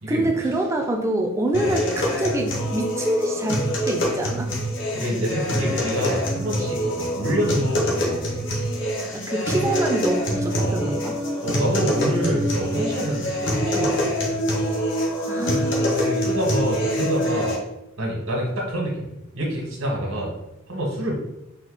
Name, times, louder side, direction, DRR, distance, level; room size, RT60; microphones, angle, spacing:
voice 1, 0.1-4.5 9.1-11.2 15.3-16.0, right 1 dB, 15° right, 2 dB, 0.4 m, -25 dB
sound 1, 1.5-17.6, equal, 60° left, 1.0 m, -25 dB
voice 2, 4.9-8.3 10.5-10.8 11.4-14.1 15.7-17.6 18.0-20.3 20.7-21.1, equal, 80° right, -1 dB, 1.4 m, -26 dB
4.3 x 2.7 x 4.0 m, 0.90 s
head